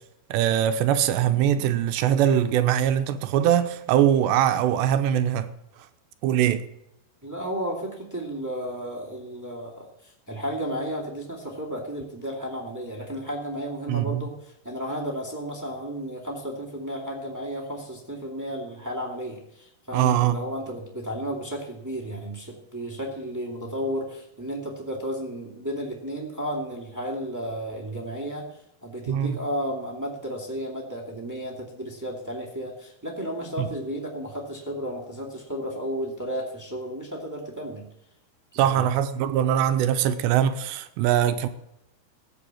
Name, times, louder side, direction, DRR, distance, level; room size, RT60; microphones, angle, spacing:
voice 1, 0.3-5.5 6.2-6.7 13.9-14.2 19.9-20.4 29.1-29.4 33.6-33.7 38.5-41.5, right 10 dB, 85° right, 2.9 m, -22 dB
voice 2, 7.2-37.8 38.5-38.9, equal, 10° right, 0.7 m, -33 dB
15.5 x 8.6 x 7.6 m
omnidirectional pair, 5.1 m